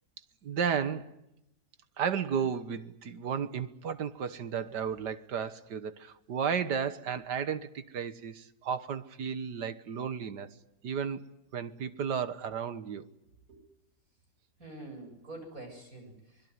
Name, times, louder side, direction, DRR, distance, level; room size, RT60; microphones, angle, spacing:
voice 1, 0.4-1.1 2.0-10.5 10.8-11.2 11.5-13.1, right 7 dB, 80° right, 12 dB, 1.9 m, -33 dB
voice 2, 14.6-16.5, right 2 dB, 55° right, 3 dB, 8.6 m, -46 dB
24.5 x 21.5 x 9.7 m, 0.86 s
omnidirectional pair, 1.8 m